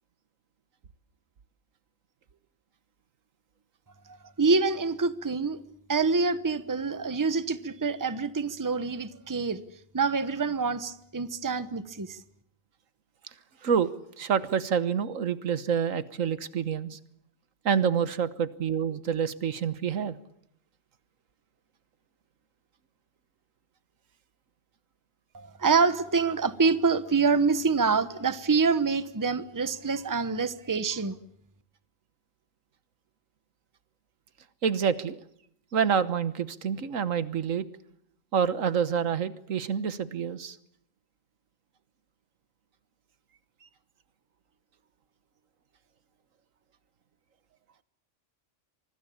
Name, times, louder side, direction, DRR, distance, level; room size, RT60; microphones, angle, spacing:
voice 1, 4.1-5.6 5.9-9.6 9.9-12.2 25.3-31.1, right 4 dB, 15° right, 14 dB, 0.9 m, -26 dB
voice 2, 14.2-17.0 17.6-20.2 34.6-35.2 35.7-37.6 38.3-40.6, right 7 dB, 80° right, 14 dB, 1.5 m, -27 dB
25.0 x 20.0 x 8.6 m, 0.71 s
omnidirectional pair, 1.3 m